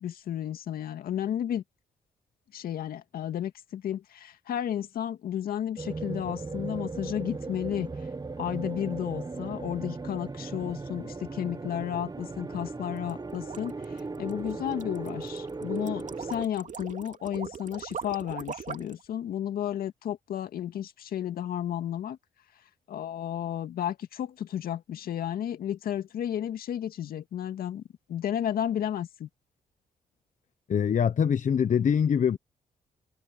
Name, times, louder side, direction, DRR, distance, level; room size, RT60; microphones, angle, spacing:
voice 1, 0.0-1.6 2.5-7.9 8.4-22.2 22.9-27.8 28.1-29.3, left 10 dB, 75° left, 2.1 m, -33 dB
sound 1, 5.8-16.5, right 3 dB, 25° right, 1.0 m, -37 dB
sound 2, 13.0-19.0, right 6 dB, 55° right, 2.5 m, -41 dB
voice 2, 30.7-32.4, left 7 dB, 55° left, 1.1 m, -24 dB
supercardioid pair, 50°, 16 cm